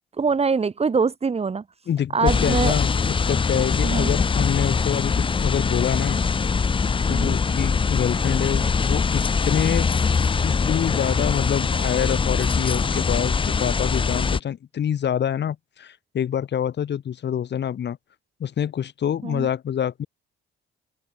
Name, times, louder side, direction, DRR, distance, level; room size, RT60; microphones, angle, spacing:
voice 1, 0.2-1.6 2.1-2.7 3.8-4.1 7.1-7.4 19.2-19.5, right 5 dB, 30° right, 1.4 m, -23 dB
voice 2, 1.9-6.2 7.1-9.9 10.4-18.0 18.4-20.1, left 9 dB, 60° left, 7.0 m, -26 dB
sound 1, 2.3-14.4, left 5 dB, 25° left, 0.7 m, -22 dB
open air
cardioid pair, 90°, 20 cm